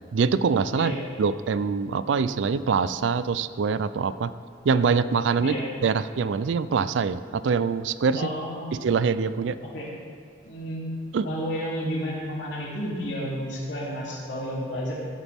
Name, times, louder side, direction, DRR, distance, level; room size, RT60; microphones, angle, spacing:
voice 1, 0.1-0.9 1.2-4.3 4.7-5.6 5.8-8.3 8.7-9.6 11.1-11.2, right 5 dB, 80° right, 14 dB, 0.4 m, -24 dB
voice 2, 8.1-8.7 9.6-9.9 10.4-10.8 11.2-14.9, equal, 75° left, -5 dB, 3.0 m, -31 dB
16.5 x 8.2 x 3.5 m, 2.2 s
head